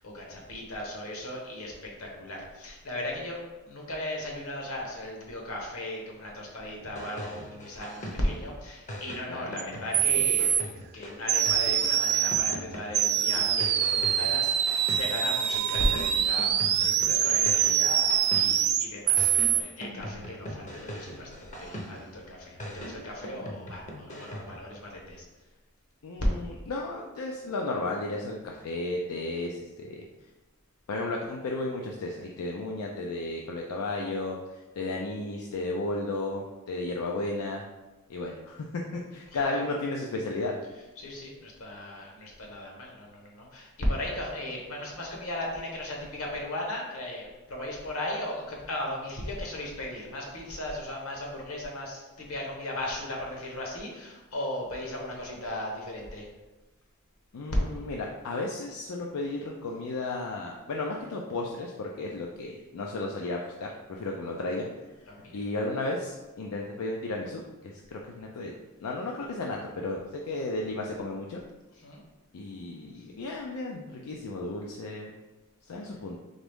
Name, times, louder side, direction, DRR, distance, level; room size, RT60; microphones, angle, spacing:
voice 1, 0.0-10.6 10.9-25.2 39.4-39.6 41.0-56.3 65.1-65.4 71.8-72.0, left 1 dB, 70° left, -1 dB, 1.1 m, -36 dB
sound 1, 6.8-8.5 8.9-15.3 15.7-18.8 19.2-22.2 22.6-24.6, equal, 35° left, 0.6 m, -41 dB
sound 2, 9.6-9.7 9.9-10.6 11.3-12.6 12.9-19.6, right 9 dB, 50° right, 0.3 m, -24 dB
voice 2, 26.0-30.0 30.9-37.6 38.1-38.7 38.9-40.5 57.3-64.7 65.3-68.5 68.8-71.4 72.3-75.1 75.6-76.2, left 2 dB, 90° left, 0 dB, 0.5 m, -34 dB
3.9 x 3.4 x 3.5 m, 1.1 s
head